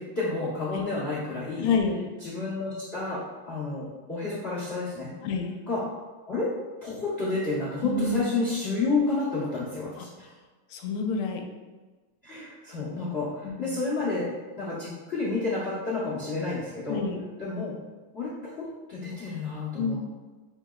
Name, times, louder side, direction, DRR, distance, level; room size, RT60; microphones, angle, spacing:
voice 1, 0.0-1.7 2.2-5.1 5.7-5.8 6.3-6.5 6.8-10.3 12.2-14.3 14.6-17.0 17.4-17.7 18.1-20.0, left 3 dB, 55° left, -9 dB, 0.6 m, -30 dB
voice 2, 1.6-2.1 5.2-5.6 7.8-8.2 10.0-10.1 10.7-11.5 13.4-13.8 16.9-17.2 19.8-20.0, left 4 dB, 80° left, 3 dB, 1.4 m, -28 dB
6.2 x 2.9 x 2.3 m, 1.3 s
omnidirectional pair, 2.4 m